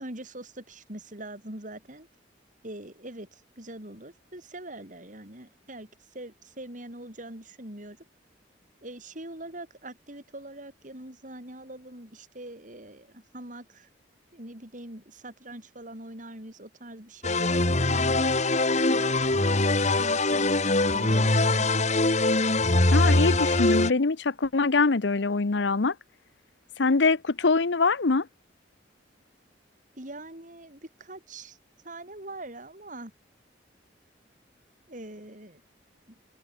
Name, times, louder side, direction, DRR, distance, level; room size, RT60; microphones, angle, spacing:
voice 1, 0.0-2.1 2.6-8.0 8.8-13.9 14.3-18.2 18.9-19.4 19.9-21.8 30.0-31.6 31.8-33.1 34.9-35.6 36.1-36.2, right 1 dB, 45° right, 6.7 m, -43 dB
sound 1, 17.2-23.9, left 2 dB, 40° left, 2.5 m, -23 dB
voice 2, 22.9-25.9 26.8-28.3, left 3 dB, 75° left, 0.8 m, -23 dB
open air
head